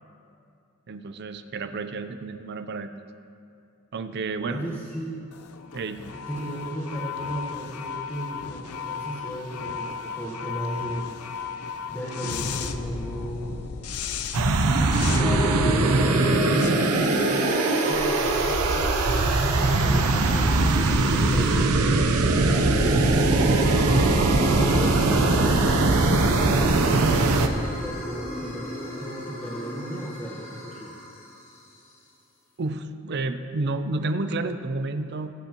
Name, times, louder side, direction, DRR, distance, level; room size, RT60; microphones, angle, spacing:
voice 1, 0.9-2.9 3.9-4.6 5.7-6.0 32.6-35.3, right 3 dB, 50° right, 9 dB, 0.5 m, -30 dB
voice 2, 4.5-5.2 6.1-13.6 14.3-15.5 16.5-17.6 17.8-23.7 24.5-30.9, right 1 dB, 10° left, -7 dB, 1.3 m, -36 dB
sound 1, 5.3-17.7, left 6 dB, 80° left, 0.6 m, -35 dB
sound 2, 14.3-27.5, right 2 dB, 90° right, 0.8 m, -21 dB
sound 3, 14.8-31.3, equal, 35° left, 2.9 m, -31 dB
21.5 x 8.2 x 3.0 m, 2.5 s
head